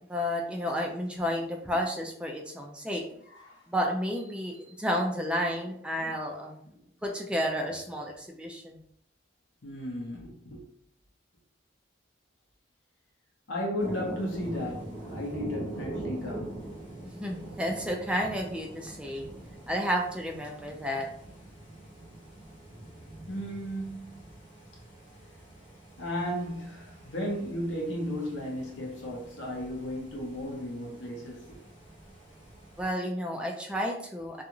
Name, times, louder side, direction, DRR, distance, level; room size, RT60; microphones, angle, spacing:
voice 1, 0.1-3.0 3.7-6.6 7.0-8.8 17.0-19.3 19.7-21.1 32.8-34.4, equal, 5° right, 0.3 m, -31 dB
voice 2, 3.3-3.6 6.8-6.9 9.6-10.6 13.5-16.6 23.3-24.3 26.0-31.6, equal, 75° left, 0.7 m, -35 dB
sound 1, 13.8-32.9, right 1 dB, 40° left, 1.2 m, -44 dB
2.4 x 2.4 x 2.9 m
head